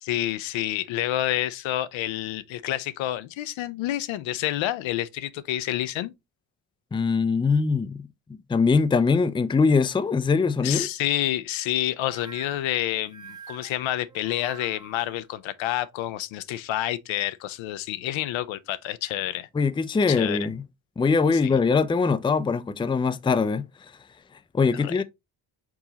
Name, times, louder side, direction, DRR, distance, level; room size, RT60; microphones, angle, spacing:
voice 1, 0.0-6.1 10.6-19.5 20.1-20.5 21.4-21.5 24.8-25.0, left 13 dB, 70° left, 0.6 m, -28 dB
voice 2, 6.9-10.9 19.5-20.6 21.0-23.7 24.5-25.0, left 4 dB, 10° left, 0.4 m, -22 dB
sound 1, 12.0-15.1, right 4 dB, 10° right, 1.0 m, -46 dB
4.8 x 3.8 x 2.8 m
supercardioid pair, 50°, 48 cm